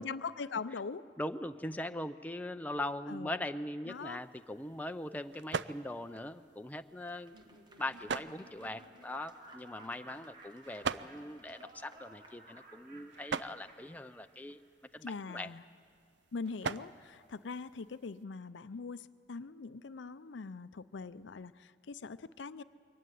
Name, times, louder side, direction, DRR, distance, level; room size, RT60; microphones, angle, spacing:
voice 1, 0.0-1.0 3.1-3.4 3.9-4.2 15.0-15.6 16.3-22.6, left 4 dB, 70° left, 15 dB, 0.5 m, -42 dB
voice 2, 1.2-14.6 14.9-15.5, left 1 dB, 10° left, 8 dB, 0.5 m, -41 dB
sound 1, 3.9-18.2, right 5 dB, 65° right, 0.5 m, -45 dB
Clapping / Applause, 7.0-13.4, right 2 dB, 25° right, 1.0 m, -63 dB
Laughter, 7.1-14.6, right 1 dB, 50° right, 2.8 m, -57 dB
23.0 x 16.0 x 9.3 m, 2.5 s
head